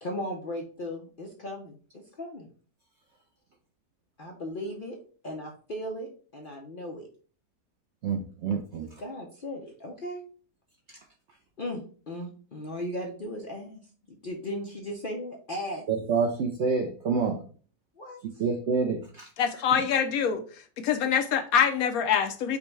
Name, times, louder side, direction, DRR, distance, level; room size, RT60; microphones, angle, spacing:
voice 1, 0.0-2.5 4.2-5.0 5.2-7.1 8.8-10.2 11.6-13.8 14.1-15.9 18.0-18.2, left 1 dB, 55° left, 0 dB, 0.6 m, -37 dB
voice 2, 8.0-8.9 10.9-11.0 15.9-17.4 18.4-19.3, right 5 dB, 70° right, 2 dB, 0.6 m, -27 dB
voice 3, 19.4-20.4 20.8-22.6, left 7 dB, 70° left, 6 dB, 1.0 m, -24 dB
5.2 x 2.2 x 4.6 m, 0.41 s
omnidirectional pair, 1.7 m